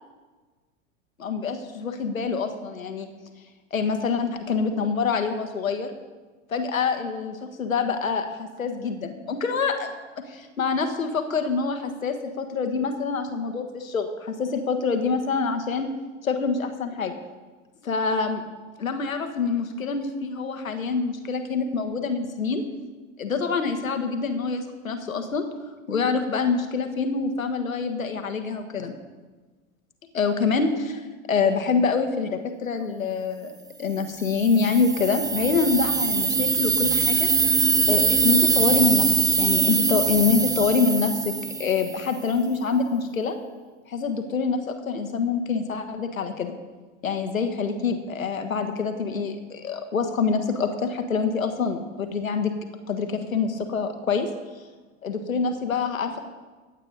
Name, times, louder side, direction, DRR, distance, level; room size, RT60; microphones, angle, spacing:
voice 1, 1.2-3.1 3.7-5.9 6.5-9.9 10.3-15.9 16.2-17.1 17.8-18.4 18.8-22.6 23.2-25.4 25.9-28.9 30.1-33.5 33.8-37.3 37.9-39.1 39.4-41.3 41.6-43.4 43.9-46.5 47.0-52.5 52.9-54.3 55.0-56.2, left 5 dB, 85° left, 7 dB, 1.5 m, -26 dB
sound 1, 34.2-42.1, right 4 dB, 10° right, 0.6 m, -23 dB
15.5 x 9.0 x 4.1 m, 1.3 s
figure-of-eight pair, 90°, 40 cm